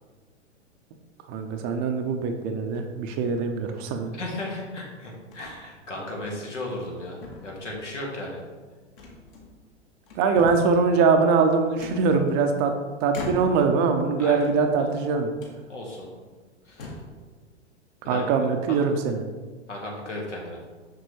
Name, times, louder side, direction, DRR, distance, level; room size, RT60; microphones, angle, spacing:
voice 1, 1.3-4.1 10.2-12.7 13.0-15.3 18.1-19.2, right 5 dB, 30° right, 5 dB, 0.6 m, -22 dB
sound 1, 2.6-3.0 3.8-4.6 5.3-5.6 6.0-6.1 6.6-7.0 7.2-7.9 9.0-9.7 10.0-10.8 11.8-12.6 13.1-13.8 14.3-15.0 15.4-15.6 16.2-16.3 16.7-17.2, left 2 dB, 50° left, 1.6 m, -40 dB
voice 2, 4.1-8.4 14.2-14.5 15.7-16.1 16.7-16.9 18.0-18.2 19.7-20.6, left 1 dB, 80° left, -2 dB, 1.9 m, -35 dB
6.8 x 5.9 x 3.2 m, 1.4 s
figure-of-eight pair, 100°, 36 cm